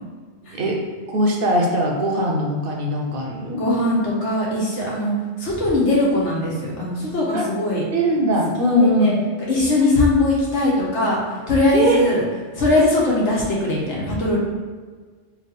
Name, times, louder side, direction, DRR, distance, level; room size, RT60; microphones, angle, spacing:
voice 1, 0.4-0.8 1.1-3.6 7.3-7.4 7.9-9.1 11.7-12.0, equal, 60° right, 0 dB, 0.7 m, -20 dB
voice 2, 3.6-7.8 8.6-9.1 9.5-12.2 12.5-14.4, left 1 dB, 85° left, -4 dB, 1.4 m, -20 dB
3.3 x 2.9 x 4.0 m, 1.5 s
omnidirectional pair, 1.2 m